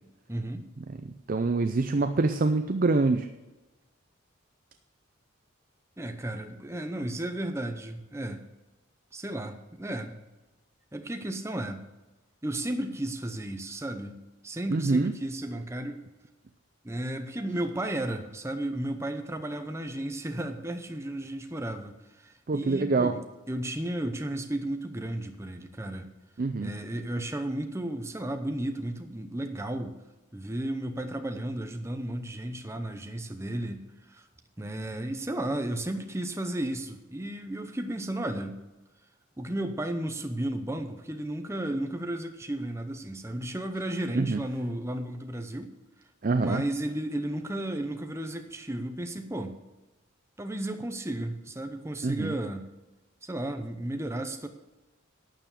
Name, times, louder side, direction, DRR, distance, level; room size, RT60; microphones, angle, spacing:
voice 1, 0.3-0.6 6.0-8.4 9.1-10.1 10.9-11.8 12.4-14.2 14.4-16.0 16.8-26.1 26.6-30.0 30.3-34.3 34.6-38.6 39.4-45.7 46.4-49.6 50.4-52.7 53.2-54.5, right 1 dB, 15° right, 6 dB, 0.7 m, -33 dB
voice 2, 0.9-3.3 14.7-15.1 22.5-23.1 26.4-26.7 44.1-44.4 46.2-46.6 52.0-52.3, right 3 dB, 40° right, 8 dB, 0.4 m, -25 dB
11.5 x 7.0 x 6.8 m, 1.1 s
head